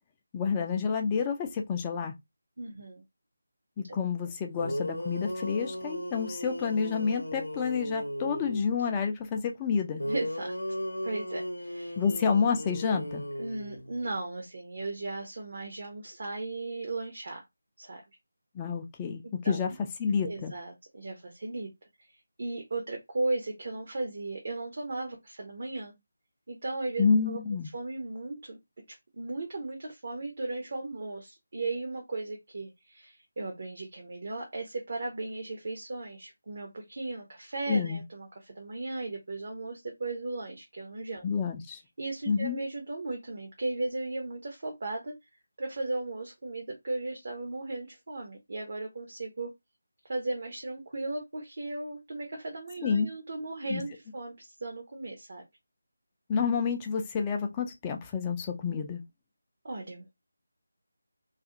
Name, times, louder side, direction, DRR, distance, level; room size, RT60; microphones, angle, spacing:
voice 1, 0.3-2.1 3.8-10.0 12.0-13.2 18.5-19.7 20.0-20.5 27.0-27.7 37.7-38.0 41.2-41.8 42.3-42.6 52.8-53.1 53.7-53.8 56.3-59.0, left 6 dB, 15° left, 0.4 m, -29 dB
voice 2, 2.6-3.0 10.0-10.6 11.0-12.0 13.4-17.4 17.8-18.0 19.4-19.6 20.2-21.7 22.4-25.9 26.5-27.4 27.7-28.6 28.9-41.3 42.0-45.1 45.6-49.5 50.1-55.4 59.6-60.1, right 2 dB, 45° right, 0.7 m, -36 dB
sound 1, 4.3-4.4 4.6-8.7 10.0-14.0, equal, 75° left, 0.6 m, -36 dB
2.4 x 2.3 x 2.7 m
figure-of-eight pair, 160°, 0 cm